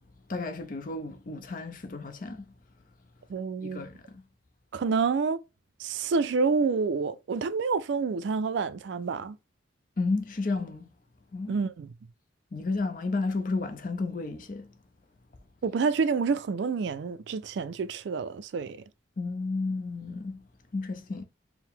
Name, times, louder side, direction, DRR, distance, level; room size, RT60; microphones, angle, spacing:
voice 1, 0.3-2.4 3.6-4.0 10.0-10.9 11.3-11.6 12.5-14.7 19.2-20.4 20.7-21.2, left 3 dB, 45° left, 0.5 m, -32 dB
voice 2, 3.3-3.8 4.7-5.4 5.8-9.4 11.5-11.9 15.6-18.8, right 5 dB, 65° right, 0.3 m, -28 dB
4.5 x 2.1 x 3.6 m
head